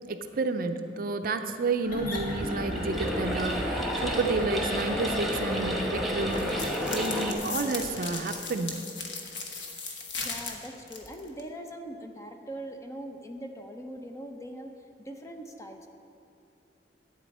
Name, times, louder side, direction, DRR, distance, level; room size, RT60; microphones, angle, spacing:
voice 1, 0.1-8.8, right 3 dB, 55° right, 7 dB, 0.5 m, -31 dB
sound 1, 1.8-8.3, equal, 50° left, 1.5 m, -35 dB
sound 2, 2.2-7.3, equal, ahead, 1.0 m, -32 dB
sound 3, 6.3-11.4, left 4 dB, 85° left, 1.2 m, -37 dB
voice 2, 10.2-15.9, right 1 dB, 15° left, 4 dB, 0.7 m, -41 dB
11.5 x 8.7 x 4.2 m, 2.7 s
head